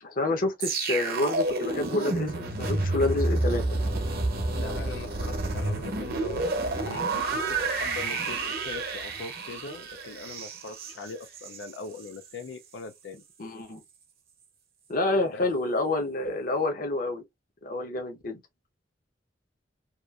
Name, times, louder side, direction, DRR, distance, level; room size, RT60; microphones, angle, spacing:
voice 1, 0.0-3.8 13.4-13.8 14.9-17.2 17.6-18.4, left 2 dB, 50° left, 0.8 m, -28 dB
sound 1, 0.6-11.7 12.0-12.3, right 2 dB, 60° right, 0.8 m, -29 dB
voice 2, 4.5-13.2 15.2-15.5, left 4 dB, 90° left, 0.4 m, -41 dB
2.9 x 2.4 x 2.3 m
head